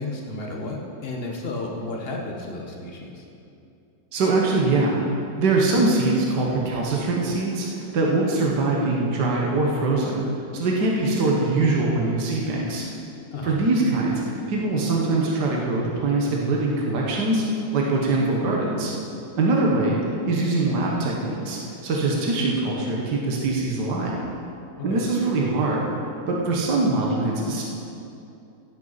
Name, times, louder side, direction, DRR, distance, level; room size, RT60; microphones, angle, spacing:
voice 1, 0.0-3.2 13.3-13.6 24.9-25.0, left 2 dB, 35° left, 0 dB, 1.4 m, -32 dB
voice 2, 4.1-5.0 5.4-10.2 10.5-12.9 13.4-17.4 17.7-18.9 19.4-24.2 24.8-25.9 26.3-27.6, right 2 dB, 65° right, -2 dB, 1.9 m, -23 dB
17.0 x 8.2 x 4.1 m, 2.7 s
omnidirectional pair, 2.0 m